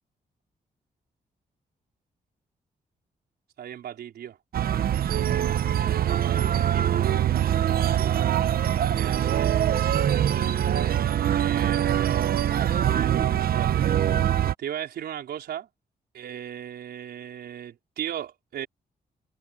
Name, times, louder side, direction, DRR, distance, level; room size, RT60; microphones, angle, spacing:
voice 1, 3.6-4.4 6.2-9.7 11.3-12.4 12.9-13.9 14.6-15.7 16.1-18.7, right 10 dB, 85° right, 4.9 m, -37 dB
sound 1, 4.5-14.5, right 10 dB, 70° right, 0.9 m, -23 dB
cardioid pair, 90°, 16 cm